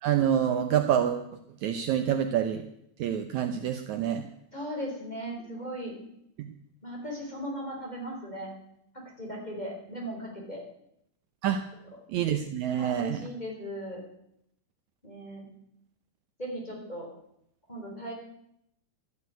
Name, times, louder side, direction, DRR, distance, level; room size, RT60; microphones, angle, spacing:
voice 1, 0.0-1.3 1.6-2.6 3.0-4.3 6.4-6.5 11.4-11.6 12.1-13.3, right 9 dB, 70° right, 8 dB, 2.0 m, -27 dB
voice 2, 4.5-6.0 6.8-8.5 8.9-10.6 12.7-14.0 15.0-15.4 16.4-17.1 17.7-18.1, equal, 10° left, -1 dB, 5.0 m, -37 dB
13.5 x 11.0 x 9.3 m, 0.76 s
omnidirectional pair, 3.8 m